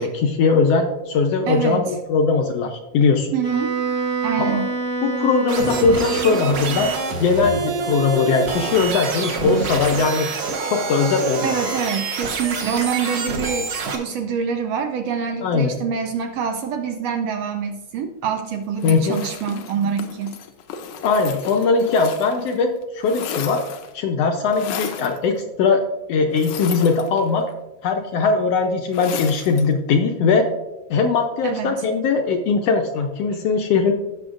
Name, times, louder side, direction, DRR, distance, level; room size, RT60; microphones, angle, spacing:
voice 1, 0.0-3.3 4.4-4.6 5.0-10.3 10.6-11.5 15.4-15.7 18.8-19.2 21.0-23.6 23.9-25.8 26.1-27.5 27.8-30.5 30.9-33.9, left 4 dB, 75° left, 4 dB, 1.5 m, -20 dB
voice 2, 1.5-2.0 3.3-3.8 4.2-4.7 11.4-20.4 31.4-31.8, right 7 dB, 75° right, 6 dB, 1.6 m, -26 dB
Wind instrument woodwind instrument, 3.4-7.0, right 4 dB, 30° right, 1.2 m, -26 dB
sound 1, 5.5-13.9, right 4 dB, 55° right, 2.0 m, -27 dB
sound 2, 18.8-22.6 22.8-24.0 24.5-25.2 26.3-27.5 28.9-29.7, left 8 dB, 90° left, 2.3 m, -34 dB
17.0 x 6.1 x 2.5 m, 1.0 s
omnidirectional pair, 3.4 m